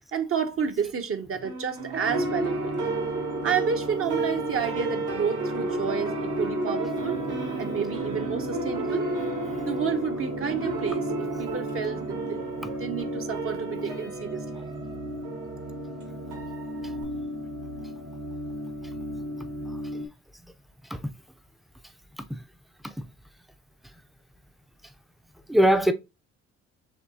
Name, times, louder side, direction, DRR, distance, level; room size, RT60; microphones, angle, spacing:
voice 1, 0.1-2.7 3.4-7.2 7.6-9.1 9.6-12.4 12.8-14.7, right 6 dB, 45° right, 0.7 m, -30 dB
sound 1, 1.4-17.0, right 3 dB, 80° right, 1.5 m, -32 dB
sound 2, 2.1-20.1, equal, 65° right, 1.1 m, -35 dB
voice 2, 20.8-21.1 21.8-22.4 22.8-23.1 24.8-24.9 25.5-25.9, equal, ahead, 0.4 m, -25 dB
6.6 x 2.7 x 2.7 m
cardioid pair, 90°, 30 cm